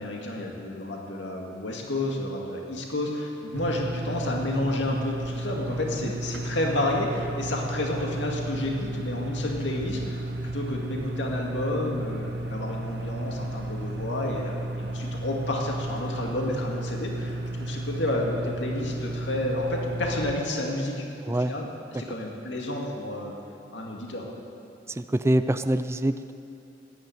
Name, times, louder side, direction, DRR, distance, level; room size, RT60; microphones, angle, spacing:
voice 1, 0.0-10.2 10.5-20.9 21.3-23.3 23.7-24.3, left 1 dB, 85° left, -1 dB, 2.1 m, -30 dB
sound 1, 3.5-20.3, right 1 dB, 65° right, 0.8 m, -33 dB
voice 2, 21.2-21.5 22.1-22.2 24.9-26.3, right 1 dB, 15° right, 10 dB, 0.4 m, -25 dB
13.5 x 10.5 x 9.1 m, 2.7 s
head